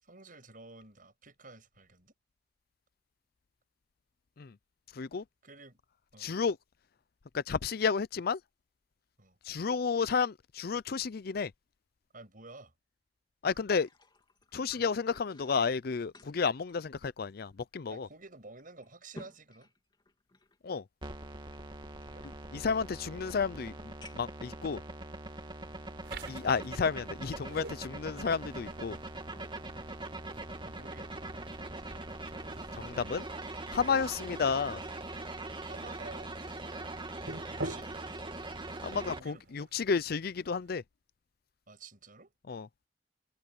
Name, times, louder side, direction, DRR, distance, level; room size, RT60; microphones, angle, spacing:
voice 1, 0.0-2.1 5.4-5.8 6.1-6.3 9.2-9.4 12.1-12.7 13.5-13.6 14.7-14.9 17.9-19.7 22.0-22.3 30.6-31.7 35.6-36.3 37.5-38.1 38.9-39.7 41.7-42.3, right 3 dB, 50° right, 7.2 m, -51 dB
voice 2, 6.2-6.6 7.3-8.4 9.5-11.5 13.4-13.9 14.5-18.1 20.6-20.8 22.5-23.7 24.1-24.8 26.3-29.0 32.8-33.3 33.7-34.8 38.8-40.8 42.5-42.7, left 5 dB, 55° left, 0.5 m, -31 dB
sound 1, 13.8-17.6 17.9-18.0 18.6-20.6 21.5-22.9 23.5-23.6 24.0-24.4 25.2-25.3 27.6-28.5 28.8-29.7 30.1-30.3, left 1 dB, 25° left, 3.3 m, -55 dB
sound 2, 21.0-39.2, right 2 dB, 25° right, 2.5 m, -42 dB
sound 3, 26.0-40.8, right 2 dB, 70° right, 6.2 m, -49 dB
head